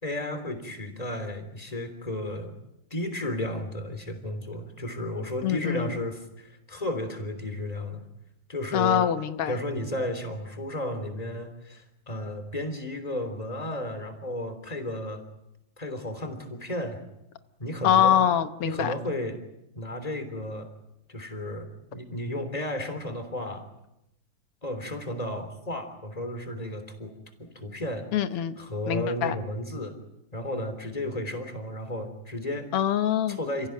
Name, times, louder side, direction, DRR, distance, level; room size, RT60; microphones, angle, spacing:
voice 1, 0.0-2.5 2.9-8.1 8.5-9.1 9.5-15.2 15.8-17.0 17.6-18.2 18.6-19.4 19.7-20.7 21.1-23.6 24.6-27.1 27.4-28.1 28.3-29.9 30.3-32.7 33.3-33.7, left 1 dB, 15° left, 8 dB, 3.4 m, -33 dB
voice 2, 5.4-5.9 8.7-9.5 17.8-18.9 28.1-28.5 28.9-29.4 32.7-33.4, left 9 dB, 90° left, 10 dB, 2.0 m, -24 dB
29.5 x 16.0 x 9.3 m, 0.86 s
omnidirectional pair, 2.4 m